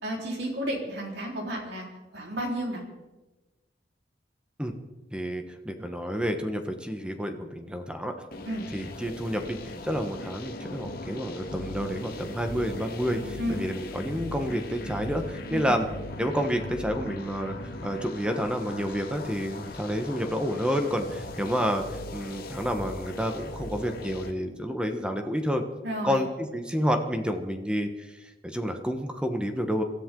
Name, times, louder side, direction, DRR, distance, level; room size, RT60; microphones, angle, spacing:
voice 1, 0.0-1.9 2.1-2.8 8.4-8.6 13.4-13.6 15.5-15.8 25.8-26.2, equal, 65° right, -1 dB, 4.1 m, -32 dB
voice 2, 5.1-8.1 8.7-15.9 16.2-17.5 17.8-25.6 26.0-29.8, equal, 5° right, 5 dB, 1.1 m, -29 dB
sound 1, 8.3-24.3, left 1 dB, 55° left, 1.8 m, -39 dB
26.0 x 13.5 x 3.8 m, 1.1 s
head